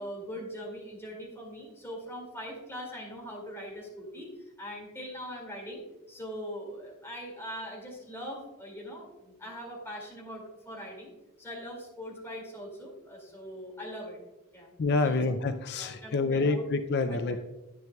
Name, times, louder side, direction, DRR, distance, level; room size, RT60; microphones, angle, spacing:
voice 1, 0.0-4.3 4.6-11.1 11.4-14.2 14.5-14.7 15.0-15.4 15.7-16.7 17.1-17.4, equal, 10° left, -2 dB, 2.3 m, -41 dB
voice 2, 14.8-17.4, left 3 dB, 50° left, 9 dB, 0.4 m, -27 dB
10.5 x 9.0 x 2.3 m, 1.0 s
head